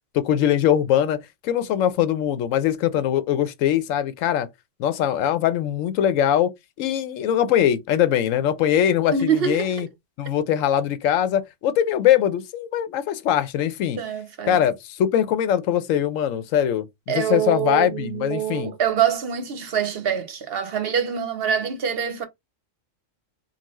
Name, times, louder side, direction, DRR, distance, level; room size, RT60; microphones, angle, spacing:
voice 1, 0.1-4.5 4.8-6.5 6.8-9.9 10.2-14.0 14.5-16.9 17.1-18.7, left 10 dB, 85° left, 1.0 m, -22 dB
voice 2, 9.1-9.8 14.0-14.6 17.1-22.3, right 8 dB, 60° right, 0.8 m, -25 dB
3.9 x 2.3 x 3.0 m
omnidirectional pair, 1.3 m